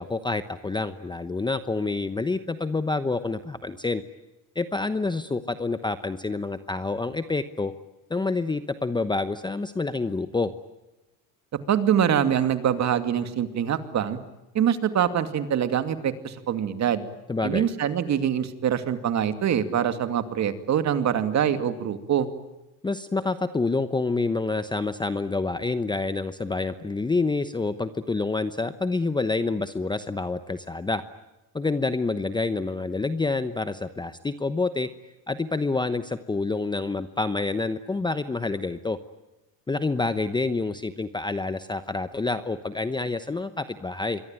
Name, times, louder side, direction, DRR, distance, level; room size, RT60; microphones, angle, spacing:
voice 1, 0.0-4.0 4.5-7.7 8.1-10.5 17.3-17.6 22.8-31.0 31.5-34.9 35.3-39.0 39.7-44.2, left 3 dB, 10° left, 11 dB, 0.9 m, -27 dB
voice 2, 11.7-14.2 14.5-17.0 17.4-22.3, right 9 dB, 40° right, 10 dB, 2.5 m, -24 dB
27.0 x 23.0 x 9.1 m, 1.0 s
cardioid pair, 130°, 44 cm